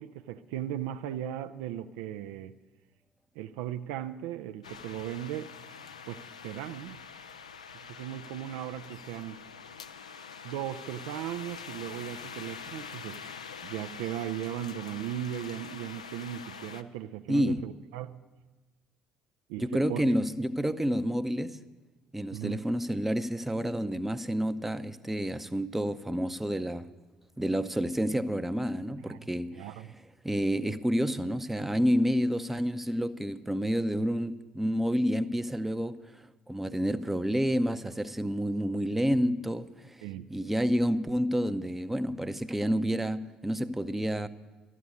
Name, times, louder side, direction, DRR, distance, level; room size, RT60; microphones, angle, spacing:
voice 1, 0.0-2.5 3.4-5.5 6.1-7.0 7.9-9.4 10.4-13.2 13.6-18.2 19.5-20.0 22.3-22.6 29.1-29.2 29.5-29.9 40.0-40.3, right 11 dB, 65° right, 0.4 m, -37 dB
sound 1, 4.6-16.8, left 6 dB, 85° left, 0.4 m, -45 dB
voice 2, 17.3-17.7 19.6-21.6 22.1-26.9 27.4-29.7 30.2-40.0 40.3-44.3, equal, 5° right, 0.6 m, -29 dB
12.5 x 8.4 x 9.5 m
figure-of-eight pair, 55°, 3 cm